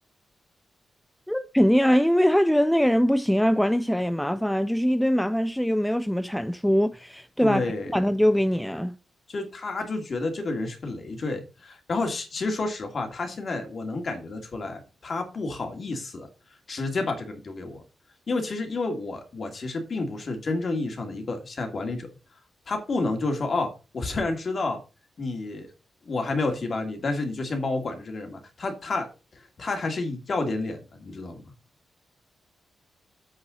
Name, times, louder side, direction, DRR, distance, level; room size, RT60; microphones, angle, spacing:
voice 1, 1.3-9.0, equal, 5° left, 0.4 m, -22 dB
voice 2, 7.4-7.9 9.3-16.3 16.7-17.8 18.3-22.1 22.7-24.8 25.2-25.7 26.0-29.1 29.6-31.4, left 3 dB, 40° left, 2.6 m, -30 dB
7.9 x 6.7 x 5.3 m
wide cardioid pair, 150°, 0 cm